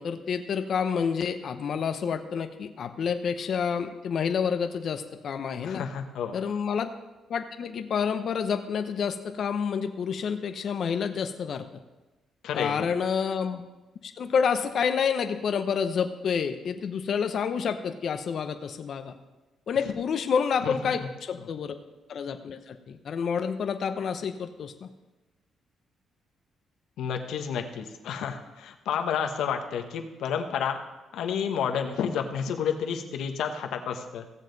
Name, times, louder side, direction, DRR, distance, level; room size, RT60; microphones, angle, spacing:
voice 1, 0.0-5.8 6.3-6.9 7.3-11.7 12.5-13.6 14.0-19.1 19.7-21.7 22.1-24.9, left 6 dB, 60° left, 8 dB, 0.7 m, -29 dB
voice 2, 5.6-6.4 12.4-12.9 20.6-20.9 27.0-30.8 31.1-34.2, left 7 dB, 80° left, 5 dB, 1.1 m, -30 dB
16.0 x 7.3 x 4.0 m, 1.1 s
cardioid pair, 90°, 0 cm